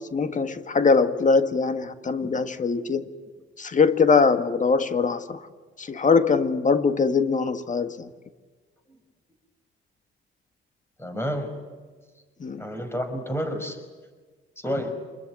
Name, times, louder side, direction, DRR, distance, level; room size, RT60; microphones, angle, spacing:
voice 1, 0.0-3.1 3.6-5.4 5.8-8.1 12.4-12.6, left 4 dB, 40° left, 1.7 m, -22 dB
voice 2, 11.0-11.5 12.6-13.8 14.6-14.9, equal, 10° left, 5.5 m, -29 dB
27.5 x 21.5 x 9.5 m
cardioid pair, 90°, 20 cm